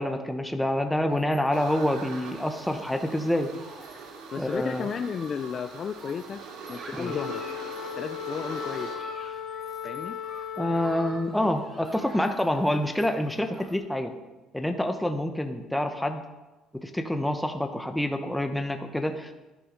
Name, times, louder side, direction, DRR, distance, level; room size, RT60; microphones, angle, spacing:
voice 1, 0.0-3.5 4.4-4.9 6.9-7.2 10.6-14.1 14.5-16.2 16.7-19.3, left 1 dB, 5° left, 6 dB, 0.9 m, -27 dB
Human group actions, 1.1-13.8, right 2 dB, 30° right, 3.3 m, -49 dB
sound 1, 1.5-9.0, right 4 dB, 85° right, 2.3 m, -42 dB
voice 2, 4.3-6.4 6.7-7.4 8.0-8.9 9.8-10.2, left 7 dB, 40° left, 10 dB, 0.4 m, -33 dB
Wind instrument woodwind instrument, 7.0-11.4, left 8 dB, 70° left, 1.8 m, -36 dB
10.0 x 10.0 x 5.1 m, 1.1 s
cardioid pair, 110°, 0 cm